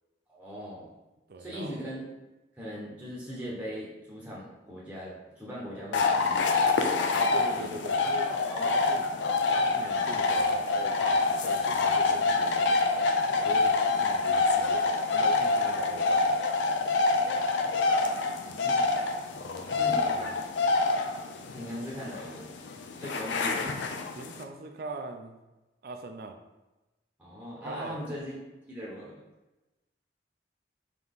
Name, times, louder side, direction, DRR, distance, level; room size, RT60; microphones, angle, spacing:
voice 1, 0.3-0.9 1.4-2.0 2.5-7.7 8.2-8.8 18.4-19.0 19.8-20.4 21.5-22.5 23.0-24.0 27.2-28.3 28.7-29.1, equal, 10° right, -6 dB, 0.8 m, -40 dB
voice 2, 1.3-1.8 7.2-8.3 8.6-9.0 9.5-12.8 13.4-16.2 19.3-20.3 23.9-25.4 25.8-26.4 27.7-28.0, right 2 dB, 55° right, 5 dB, 0.4 m, -42 dB
sound 1, 5.9-24.4, left 3 dB, 80° left, 0.4 m, -26 dB
4.0 x 2.9 x 3.5 m, 1.1 s
head